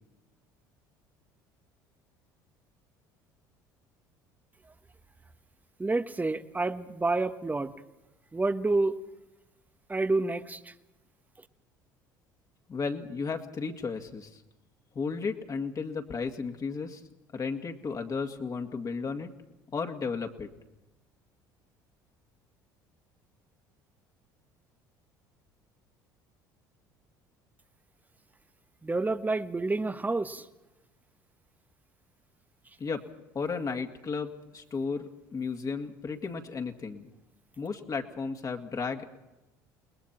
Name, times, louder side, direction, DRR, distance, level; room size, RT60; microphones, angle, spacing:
voice 1, 5.8-7.7 8.3-9.0 9.9-10.7 28.8-30.5, right 3 dB, 15° right, 11 dB, 1.2 m, -28 dB
voice 2, 12.7-14.4 14.9-17.0 17.3-19.3 19.7-20.5 32.8-33.0 33.3-37.1 37.6-39.1, left 5 dB, 35° left, 5 dB, 2.2 m, -34 dB
29.5 x 20.5 x 4.4 m, 1.0 s
hypercardioid pair, 65°, 10 cm